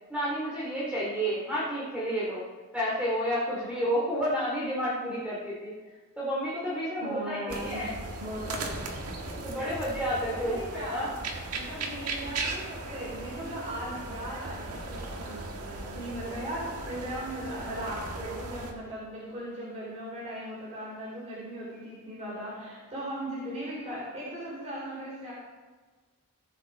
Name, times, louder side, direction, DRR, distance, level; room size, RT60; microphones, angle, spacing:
voice 1, 0.1-2.4 2.7-5.7 6.2-7.9 9.3-11.1 16.2-16.4, equal, 5° right, -8 dB, 2.5 m, -30 dB
voice 2, 7.0-7.8 8.2-8.8 10.3-11.1 11.5-25.3, right 1 dB, 30° right, -7 dB, 4.1 m, -38 dB
sound 1, 7.5-18.7, right 2 dB, 85° right, 1.7 m, -37 dB
18.5 x 7.2 x 4.3 m, 1.3 s
head